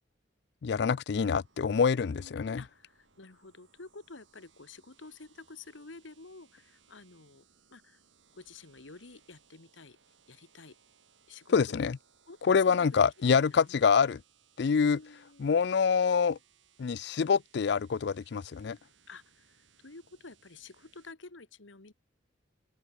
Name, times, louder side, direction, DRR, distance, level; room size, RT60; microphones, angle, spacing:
voice 1, 0.6-2.6 11.5-12.0 12.5-14.2 14.6-15.0 15.4-16.4 16.8-18.8, left 6 dB, 60° left, 0.4 m, -26 dB
sound 1, 1.1-21.1, right 7 dB, 85° right, 7.1 m, -66 dB
voice 2, 1.9-7.4 7.7-8.0 8.3-10.0 10.3-10.8 11.3-11.9 12.3-13.8 14.8-15.5 19.1-21.9, left 3 dB, 90° left, 1.7 m, -51 dB
head